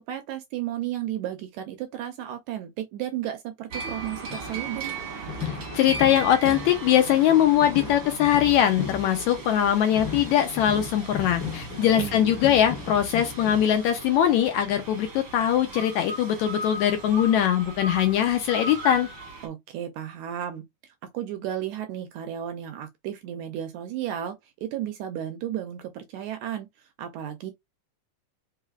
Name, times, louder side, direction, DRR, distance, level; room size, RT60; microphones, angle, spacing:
voice 1, 0.0-5.0 11.8-12.3 19.4-27.5, right 11 dB, 80° right, 1.7 m, -34 dB
sound 1, 3.7-19.5, right 2 dB, 55° right, 1.2 m, -38 dB
sound 2, 4.3-14.2 14.7-14.9, left 5 dB, 50° left, 1.6 m, -37 dB
voice 2, 5.7-19.1, left 10 dB, 80° left, 1.7 m, -21 dB
4.7 x 3.2 x 2.3 m
omnidirectional pair, 3.7 m